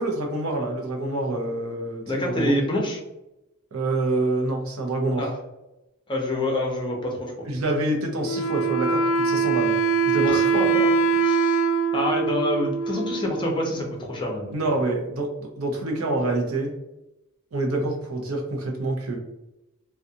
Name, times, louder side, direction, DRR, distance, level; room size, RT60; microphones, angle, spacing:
voice 1, 0.0-2.5 3.7-5.3 7.4-10.6 14.5-16.7 17.5-19.2, right 2 dB, 85° right, 1 dB, 0.7 m, -27 dB
voice 2, 2.1-3.0 5.2-5.3 6.1-7.3 10.2-11.7 11.9-14.6, left 1 dB, 20° left, 0 dB, 0.6 m, -27 dB
Wind instrument woodwind instrument, 8.2-13.7, right 5 dB, 75° left, 0.4 m, -23 dB
2.5 x 2.3 x 2.6 m, 0.92 s
head